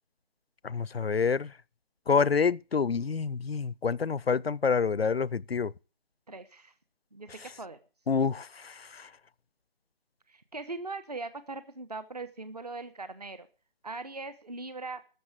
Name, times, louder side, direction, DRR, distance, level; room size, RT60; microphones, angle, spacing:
voice 1, 0.6-1.6 2.1-5.7 7.3-7.5 8.1-9.1, left 5 dB, 90° left, 0.6 m, -28 dB
voice 2, 6.3-6.7 7.1-7.3 7.6-7.8 10.3-13.5 13.8-15.0, right 3 dB, 45° right, 1.1 m, -40 dB
13.5 x 6.7 x 9.1 m
figure-of-eight pair, 170°, 29 cm